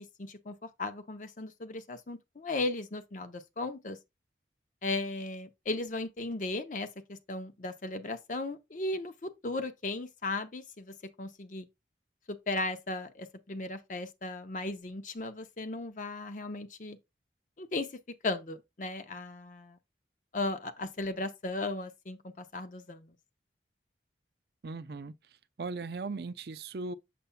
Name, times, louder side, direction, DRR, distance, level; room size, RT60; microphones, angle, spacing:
voice 1, 0.0-4.0 4.8-11.7 12.3-17.0 17.6-17.9 18.2-19.8 20.3-23.1, left 2 dB, 45° left, 0.6 m, -36 dB
voice 2, 24.6-25.1 25.6-26.9, right 3 dB, 60° right, 0.5 m, -38 dB
6.9 x 6.7 x 2.2 m
head